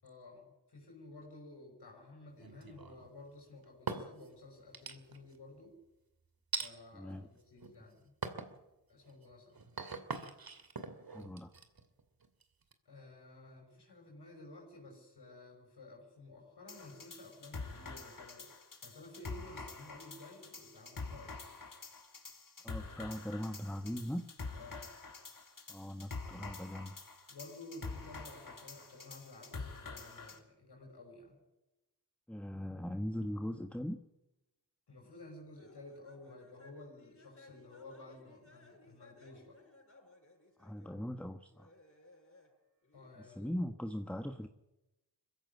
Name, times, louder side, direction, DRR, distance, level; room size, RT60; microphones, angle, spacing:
voice 1, 0.0-5.8 6.6-8.1 8.9-9.5 12.9-21.6 24.6-24.9 27.3-31.4 34.9-39.6 42.9-43.5, left 2 dB, 75° left, 1 dB, 6.0 m, -53 dB
sound 1, 2.4-3.1 3.6-4.3 4.7-5.4 6.5-6.7 7.4-7.8 8.2-8.6 9.0-12.7, right 4 dB, 60° right, 2.6 m, -42 dB
voice 2, 6.9-7.3 11.1-11.5 22.6-24.3 25.7-26.9 32.3-34.0 40.6-41.7 43.2-44.5, equal, 5° left, 7 dB, 1.4 m, -40 dB
sound 2, 16.7-30.4, left 3 dB, 50° left, 3.5 m, -47 dB
sound 3, 35.6-41.0 41.5-42.5 42.8-43.2, left 2 dB, 35° left, 7.5 m, -62 dB
21.0 x 16.0 x 9.6 m, 0.98 s
cardioid pair, 45°, 40 cm